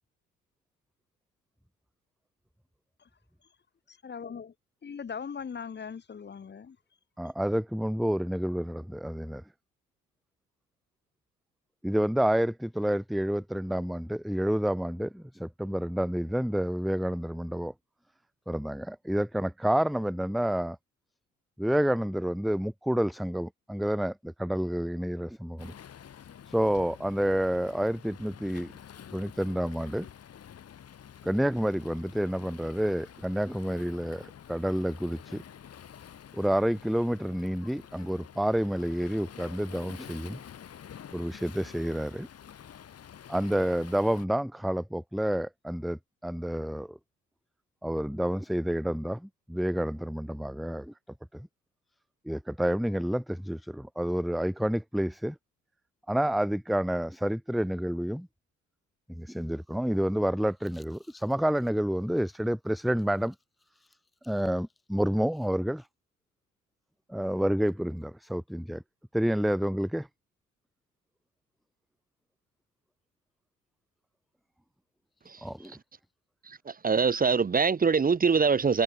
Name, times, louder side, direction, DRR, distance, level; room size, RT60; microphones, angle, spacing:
voice 1, 3.9-4.5 4.8-6.8, left 6 dB, 35° left, 1.4 m, -40 dB
voice 2, 7.2-9.4 11.8-17.7 18.5-20.8 21.6-25.7 26.5-28.7 29.1-30.1 31.2-35.4 36.3-40.4 41.1-42.3 43.3-47.0 47.8-50.9 51.3-51.5 52.3-55.4 56.1-58.3 59.1-63.3 64.2-65.9 67.1-68.8 69.1-70.1 75.4-75.8, equal, ahead, 0.4 m, -29 dB
Waves surf, 25.6-44.3, left 9 dB, 55° left, 2.2 m, -49 dB
voice 3, 76.5-78.8, right 5 dB, 30° right, 0.9 m, -24 dB
cardioid pair, 90°, 30 cm